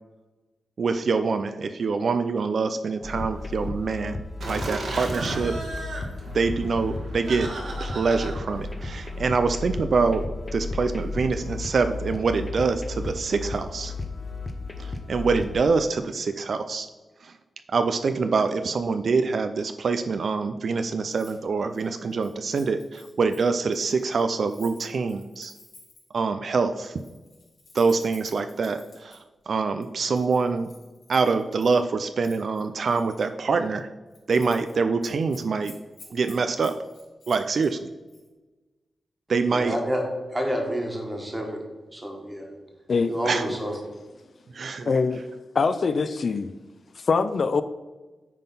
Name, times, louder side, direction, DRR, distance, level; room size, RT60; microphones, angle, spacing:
voice 1, 0.8-4.2 4.5-5.6 6.3-7.5 7.8-10.3 10.5-13.9 14.8-16.9 17.2-17.3 17.7-25.5 26.1-27.0 27.7-29.2 29.5-30.7 31.1-33.9 34.3-35.7 36.1-36.8 37.3-37.8 39.3-39.8 43.3-43.5 44.5-44.9, right 4 dB, 55° right, 9 dB, 0.4 m, -25 dB
sound 1, 3.0-15.6, left 3 dB, 20° left, 0.9 m, -34 dB
Laughter, 4.4-9.6, right 2 dB, 75° right, 1.5 m, -35 dB
Keys jangling, 21.1-21.4 21.6-26.2 26.8-29.2 29.8-31.8 32.2-33.3 33.6-33.8 34.1-34.7 35.0-37.7 38.1-38.3, left 3 dB, 75° left, 2.8 m, -51 dB
voice 2, 39.5-40.0 40.3-41.6 41.9-42.5 43.1-43.8, equal, 15° right, 1 dB, 1.6 m, -29 dB
voice 3, 44.9-45.3 45.5-46.5 47.0-47.6, left 4 dB, 50° left, 12 dB, 0.3 m, -23 dB
9.1 x 3.8 x 5.7 m, 1.2 s
wide cardioid pair, 125°, 0 cm